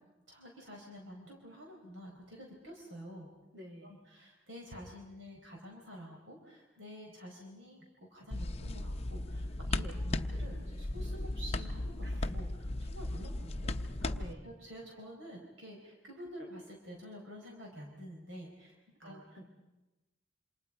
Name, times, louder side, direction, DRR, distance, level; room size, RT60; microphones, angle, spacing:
voice 1, 0.3-3.3 3.8-14.1 14.4-19.4, equal, 85° right, 0 dB, 4.7 m, -49 dB
voice 2, 3.5-4.0 9.8-10.0 12.0-12.4 14.1-14.5 19.0-19.5, right 1 dB, 70° right, 3 dB, 4.0 m, -50 dB
sound 1, 8.3-14.3, left 2 dB, 30° left, 0.7 m, -36 dB
28.0 x 27.0 x 5.1 m, 1.1 s
head